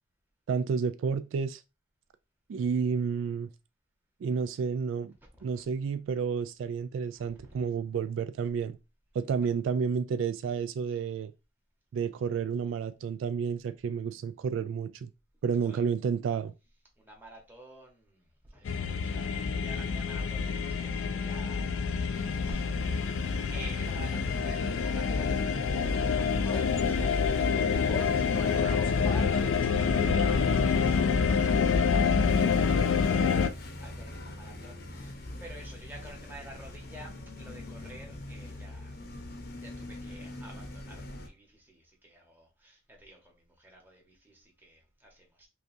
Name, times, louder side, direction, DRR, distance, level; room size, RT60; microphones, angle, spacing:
voice 1, 0.5-1.6 2.5-3.5 4.2-5.1 5.4-8.8 9.1-11.3 11.9-15.1 15.4-16.5, right 6 dB, 75° right, 0.3 m, -30 dB
voice 2, 7.1-7.6 15.6-15.8 17.0-21.7 22.1-39.0 39.5-45.5, right 1 dB, 10° right, 1.1 m, -50 dB
sound 1, 18.7-33.5, left 5 dB, 85° left, 0.4 m, -27 dB
sound 2, 22.1-41.3, left 2 dB, 55° left, 0.7 m, -43 dB
sound 3, 25.7-31.6, left 1 dB, 5° left, 0.9 m, -40 dB
5.2 x 2.3 x 2.7 m
head